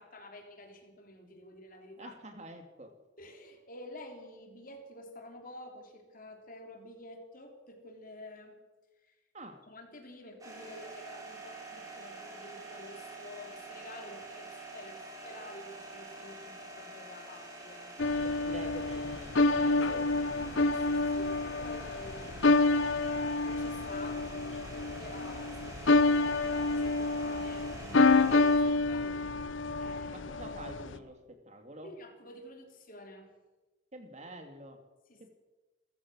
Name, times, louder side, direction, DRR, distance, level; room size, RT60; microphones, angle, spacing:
voice 1, 0.0-2.1 3.2-8.6 9.0-9.2 9.6-18.1 20.7-22.6 23.4-29.3 29.8-30.3 30.9-31.0 31.8-33.3 35.1-35.3, left 1 dB, 45° left, 4 dB, 3.4 m, -50 dB
voice 2, 2.0-2.9 9.3-9.6 18.2-20.6 30.1-31.9 33.9-34.8 35.2-35.3, right 1 dB, 35° right, 6 dB, 2.6 m, -47 dB
sound 1, 10.4-28.6, right 2 dB, 20° right, 5.7 m, -47 dB
sound 2, 18.0-31.0, left 3 dB, 80° left, 0.9 m, -28 dB
28.0 x 15.0 x 6.3 m, 1.2 s
head